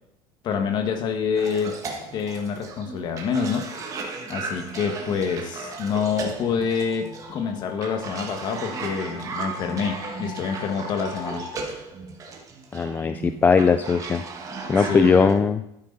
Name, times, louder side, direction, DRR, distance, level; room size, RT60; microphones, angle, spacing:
voice 1, 0.4-1.8 2.1-3.8 4.3-11.5 14.8-15.4, left 6 dB, 40° left, 6 dB, 1.6 m, -27 dB
Cough, 1.4-15.3, right 4 dB, 30° right, 1.6 m, -36 dB
sound 1, 5.7-11.6, left 5 dB, 70° left, 4.3 m, -42 dB
voice 2, 12.7-14.2 14.7-15.6, left 5 dB, 15° left, 10 dB, 0.3 m, -19 dB
12.5 x 9.6 x 4.0 m, 0.82 s
cardioid pair, 160°, 12 cm